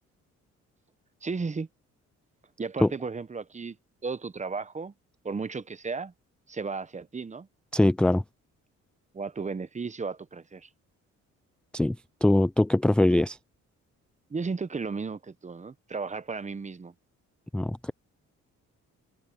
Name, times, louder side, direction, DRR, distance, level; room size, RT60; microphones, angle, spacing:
voice 1, 1.2-1.7 2.6-3.8 4.0-4.9 5.2-6.1 6.5-7.5 9.1-10.7 14.3-16.9, right 4 dB, 25° right, 0.9 m, -34 dB
voice 2, 7.7-8.2 11.7-12.0 12.2-13.4 17.5-17.9, left 1 dB, 5° left, 0.4 m, -22 dB
open air
cardioid pair, 90°, 30 cm